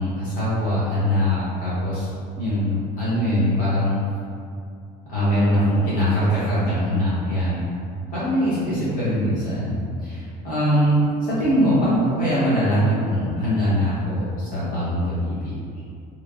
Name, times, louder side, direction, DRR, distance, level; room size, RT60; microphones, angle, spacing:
voice 1, 0.0-2.1 2.4-4.0 5.1-7.7 8.1-9.7 10.0-15.7, equal, 45° left, -12 dB, 0.9 m, -22 dB
3.2 x 2.0 x 2.3 m, 2.4 s
cardioid pair, 155°, 19 cm